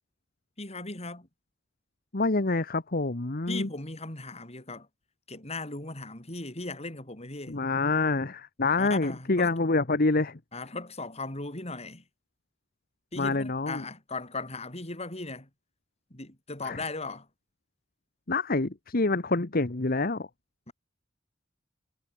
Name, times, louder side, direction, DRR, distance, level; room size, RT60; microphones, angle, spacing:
voice 1, 0.6-1.3 3.5-4.9 5.3-7.6 8.7-9.5 10.5-12.0 13.1-15.5 16.1-17.3 20.7-20.8, left 3 dB, 35° left, 5.5 m, -38 dB
voice 2, 2.1-3.7 7.5-10.4 13.2-13.8 16.6-16.8 18.3-20.3, left 3 dB, 50° left, 1.3 m, -27 dB
head